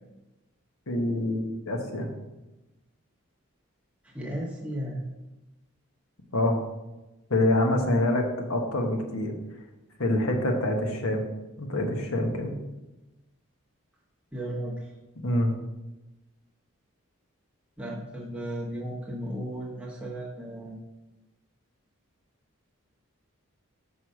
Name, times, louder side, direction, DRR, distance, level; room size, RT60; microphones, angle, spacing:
voice 1, 0.9-2.1 6.3-6.6 7.3-9.3 10.0-11.2 11.6-12.5 15.2-15.5, left 1 dB, 75° left, 3 dB, 1.2 m, -26 dB
voice 2, 4.1-5.0 14.3-14.8 17.8-20.8, equal, 5° right, -4 dB, 0.9 m, -35 dB
5.4 x 4.7 x 6.3 m, 1.0 s
head